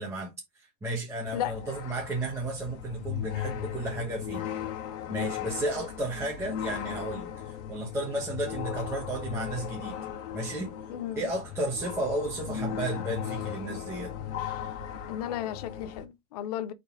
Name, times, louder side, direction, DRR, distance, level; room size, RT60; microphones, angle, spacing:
voice 1, 0.0-4.5 5.1-10.0 10.3-10.7 11.1-14.1, right 1 dB, 5° right, 1.3 m, -33 dB
sound 1, 1.3-16.0, left 9 dB, 60° left, 1.7 m, -37 dB
voice 2, 10.9-11.2 15.1-16.7, left 11 dB, 30° left, 0.4 m, -34 dB
6.7 x 4.1 x 3.7 m
supercardioid pair, 170°, 44 cm